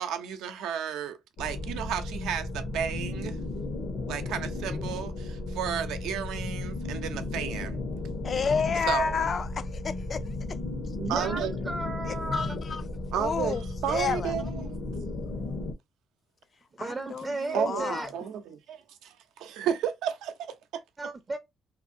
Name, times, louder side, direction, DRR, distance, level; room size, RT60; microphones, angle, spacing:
voice 1, 0.0-3.4 4.1-7.8 8.9-9.3 11.1-11.5 13.1-14.8 17.5-20.8, right 8 dB, 90° right, 0.5 m, -33 dB
sound 1, 1.4-15.7, left 2 dB, 70° left, 1.0 m, -34 dB
voice 2, 8.2-10.2 12.3-12.8 13.2-14.3 16.8-18.1, left 6 dB, 45° left, 0.4 m, -30 dB
voice 3, 11.0-12.6 16.7-18.1 21.0-21.4, right 3 dB, 30° right, 0.5 m, -34 dB
2.6 x 2.6 x 2.5 m
cardioid pair, 90°, 0 cm